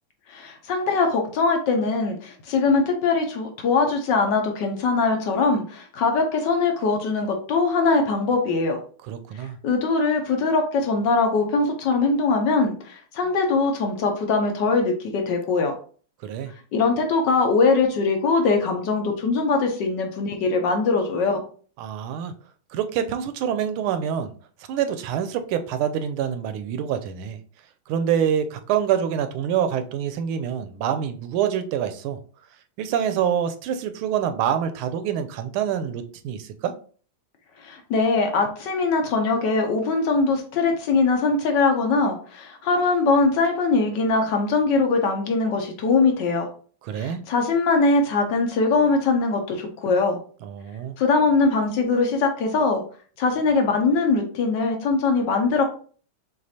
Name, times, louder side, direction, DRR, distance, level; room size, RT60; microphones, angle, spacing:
voice 1, 0.3-8.8 9.6-15.7 16.7-21.4 37.6-46.5 46.9-50.2 51.0-52.8 53.2-55.6, left 4 dB, 70° left, 3 dB, 1.3 m, -22 dB
voice 2, 9.1-9.6 16.2-16.5 21.8-22.3 22.7-24.3 24.7-27.4 27.9-32.2 32.8-36.7 46.8-47.2 50.4-51.0, right 9 dB, 85° right, 9 dB, 1.4 m, -26 dB
6.1 x 2.6 x 2.7 m, 0.42 s
omnidirectional pair, 2.3 m